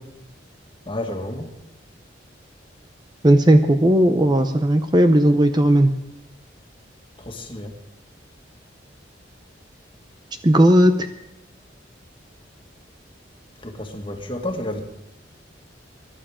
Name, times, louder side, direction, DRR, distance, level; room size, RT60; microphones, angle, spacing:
voice 1, 0.9-1.5 7.3-7.7 13.6-14.8, left 1 dB, 25° left, 3 dB, 2.0 m, -30 dB
voice 2, 3.2-5.9 10.4-10.9, right 1 dB, 25° right, 7 dB, 0.7 m, -15 dB
23.5 x 11.5 x 5.1 m, 0.87 s
head